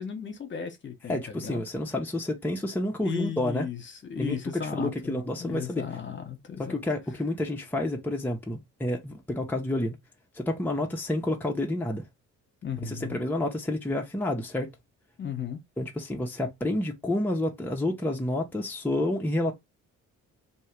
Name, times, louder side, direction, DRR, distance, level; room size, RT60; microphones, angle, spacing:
voice 1, 0.0-1.6 3.0-3.8 4.1-6.7 12.6-13.2 15.2-15.6, left 7 dB, 40° left, 1.2 m, -35 dB
voice 2, 1.1-3.7 4.2-5.9 6.6-10.0 10.3-12.1 12.8-14.7 15.8-19.5, left 1 dB, 5° left, 0.9 m, -29 dB
3.1 x 2.9 x 4.5 m
cardioid pair, 90°, 30 cm